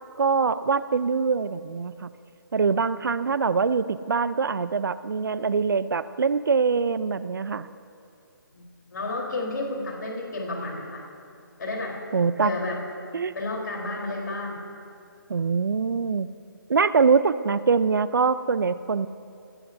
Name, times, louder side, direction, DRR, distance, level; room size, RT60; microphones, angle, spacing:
voice 1, 0.2-2.1 2.5-7.7 12.1-12.5 13.1-13.3 15.3-16.3 16.7-19.1, right 5 dB, 70° right, 15 dB, 0.6 m, -23 dB
voice 2, 8.9-11.0 11.6-12.0 12.4-12.8 13.3-14.6, left 2 dB, 60° left, -1 dB, 4.0 m, -31 dB
25.0 x 19.0 x 2.7 m, 2.4 s
hypercardioid pair, 160°, 11 cm